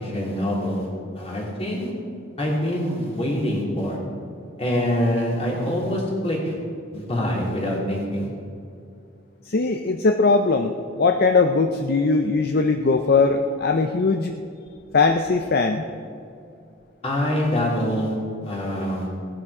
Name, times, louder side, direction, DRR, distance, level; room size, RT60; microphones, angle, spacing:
voice 1, 0.0-0.9 1.1-1.9 2.4-4.0 4.6-6.5 6.9-8.3 17.0-18.1 18.4-19.1, equal, 30° left, -3 dB, 3.2 m, -25 dB
voice 2, 9.5-14.3 14.9-15.8, left 4 dB, 55° left, 6 dB, 0.6 m, -20 dB
17.5 x 10.0 x 4.9 m, 2.4 s
head